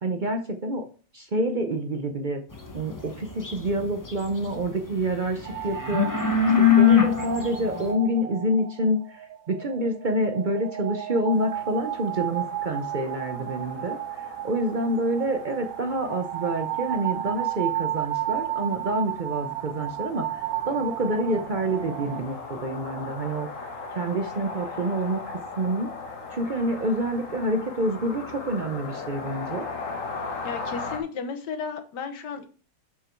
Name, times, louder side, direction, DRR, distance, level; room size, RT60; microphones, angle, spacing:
voice 1, 0.0-0.8 1.1-2.4 2.7-6.3 6.7-23.5 23.9-25.9 26.3-29.7, right 1 dB, 65° right, 6 dB, 0.4 m, -27 dB
sound 1, 2.5-4.6 4.9-7.9, left 8 dB, 15° left, 0.6 m, -22 dB
sound 2, 5.5-22.2, right 13 dB, 90° right, 1.4 m, -33 dB
sound 3, 11.3-31.0, left 3 dB, 45° left, 1.5 m, -39 dB
voice 2, 30.4-32.5, left 6 dB, 70° left, 7 dB, 1.6 m, -33 dB
6.6 x 6.0 x 4.5 m, 0.38 s
omnidirectional pair, 2.0 m